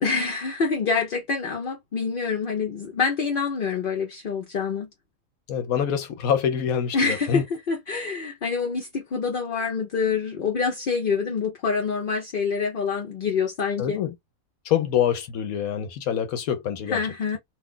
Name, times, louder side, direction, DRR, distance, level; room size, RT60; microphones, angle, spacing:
voice 1, 0.0-4.9 6.9-14.0 16.9-17.4, left 5 dB, 50° left, 0.7 m, -26 dB
voice 2, 5.5-7.4 13.8-14.1 14.7-17.0, left 9 dB, 75° left, 1.1 m, -25 dB
2.6 x 2.3 x 3.6 m
omnidirectional pair, 1.5 m